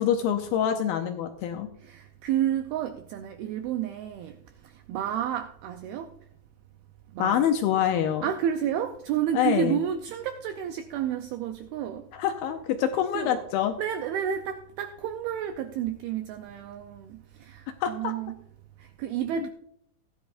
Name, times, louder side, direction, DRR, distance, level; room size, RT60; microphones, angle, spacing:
voice 1, 0.0-1.7 7.2-8.3 9.3-9.8 12.1-13.7 17.8-18.1 19.4-19.5, left 9 dB, 85° left, 2.1 m, -26 dB
voice 2, 1.8-4.4 4.6-6.1 7.1-7.5 8.2-12.1 13.1-13.4 13.8-18.4 18.8-19.5, right 9 dB, 90° right, 2.2 m, -31 dB
17.0 x 10.0 x 2.5 m
omnidirectional pair, 5.2 m